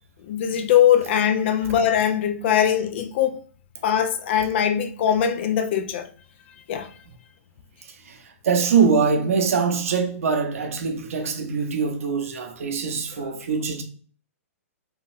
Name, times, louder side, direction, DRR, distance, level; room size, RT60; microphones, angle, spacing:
voice 1, 0.2-3.4 3.8-6.1 6.7-6.9 13.1-13.3, left 9 dB, 50° left, 0.4 m, -21 dB
voice 2, 8.0-13.8, right 5 dB, 70° right, 0.6 m, -23 dB
3.2 x 2.2 x 2.6 m
hypercardioid pair, 140°, 8 cm